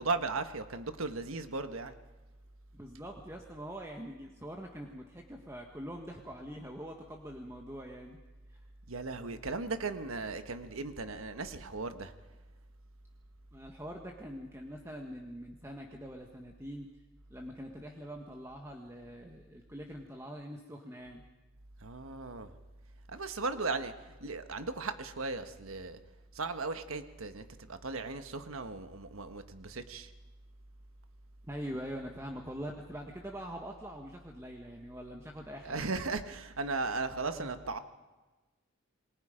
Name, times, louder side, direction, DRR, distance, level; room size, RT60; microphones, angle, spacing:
voice 1, 0.0-1.9 8.9-12.1 21.8-22.5 23.1-26.0 26.3-30.1 35.6-37.8, right 3 dB, 85° right, 9 dB, 1.4 m, -37 dB
voice 2, 2.7-8.2 8.5-8.6 13.5-16.9 17.3-21.2 31.5-35.8 37.3-37.6, equal, 15° right, 2 dB, 1.5 m, -44 dB
28.0 x 21.5 x 5.1 m, 1.2 s
head